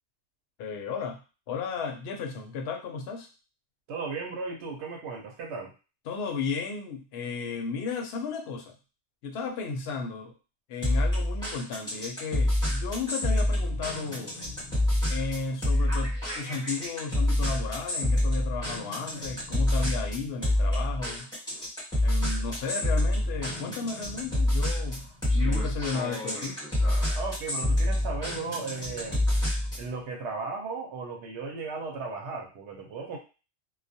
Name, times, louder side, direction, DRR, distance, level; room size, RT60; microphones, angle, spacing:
voice 1, 0.6-1.2 1.5-3.3 6.1-8.7 9.2-10.3 10.7-14.4 15.1-21.3 22.0-26.6, left 5 dB, 70° left, 2 dB, 0.8 m, -34 dB
voice 2, 3.9-5.7 27.1-29.3 29.8-33.2, right 4 dB, 85° right, 0 dB, 0.9 m, -36 dB
sound 1, 10.8-29.9, left 1 dB, 5° left, 1.2 m, -27 dB
2.3 x 2.1 x 2.6 m, 0.33 s
omnidirectional pair, 1.1 m